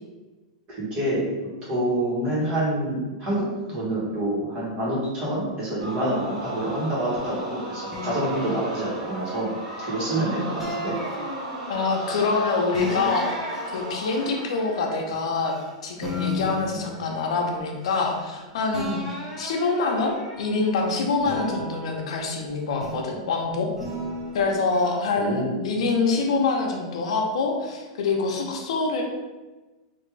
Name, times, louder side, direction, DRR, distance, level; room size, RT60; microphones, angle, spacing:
voice 1, 0.7-1.2 1.6-3.4 3.7-9.5 9.8-10.9 25.1-25.6, right 1 dB, 30° right, -6 dB, 1.3 m, -27 dB
sound 1, 5.8-14.7, right 1 dB, 85° right, 1.1 m, -35 dB
sound 2, 7.9-10.1 10.6-11.9 12.7-15.7 16.0-18.4 18.7-20.7 21.2-23.2 23.8-24.9, left 1 dB, 5° right, 0.7 m, -35 dB
voice 2, 11.7-13.5 13.7-15.5 15.8-19.0 19.4-23.7 24.3-29.0, left 4 dB, 75° left, 1 dB, 0.7 m, -25 dB
3.4 x 2.6 x 3.3 m, 1.2 s
supercardioid pair, 155°, 3 cm